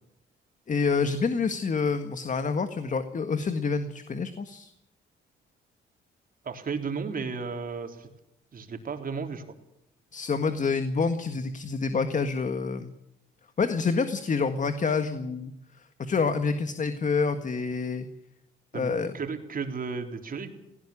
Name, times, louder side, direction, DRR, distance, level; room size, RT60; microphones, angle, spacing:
voice 1, 0.7-4.7 10.1-12.9 13.6-15.5 16.0-18.1 18.7-19.1, left 4 dB, 40° left, 9 dB, 1.7 m, -27 dB
voice 2, 6.4-8.1 8.5-9.4 18.7-20.5, right 5 dB, 45° right, 4 dB, 3.8 m, -34 dB
18.5 x 17.0 x 8.7 m, 0.83 s
cardioid pair, 90°, 20 cm